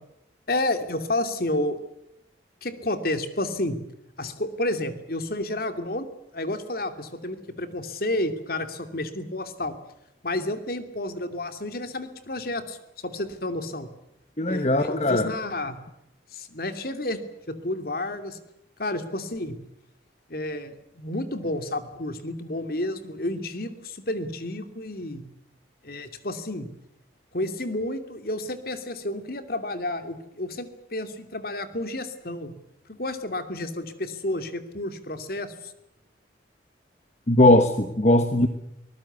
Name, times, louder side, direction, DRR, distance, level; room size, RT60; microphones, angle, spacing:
voice 1, 0.5-1.8 2.6-3.8 4.2-6.1 6.3-9.7 10.2-12.8 13.0-13.9 14.5-15.8 16.3-17.2 17.5-18.4 18.8-19.6 20.3-25.2 25.8-26.7 27.3-32.5 32.9-35.7, left 1 dB, 50° left, 9 dB, 2.8 m, -30 dB
voice 2, 14.4-15.3 37.3-38.5, left 1 dB, 35° left, 8 dB, 1.4 m, -19 dB
24.0 x 20.0 x 8.3 m, 0.83 s
head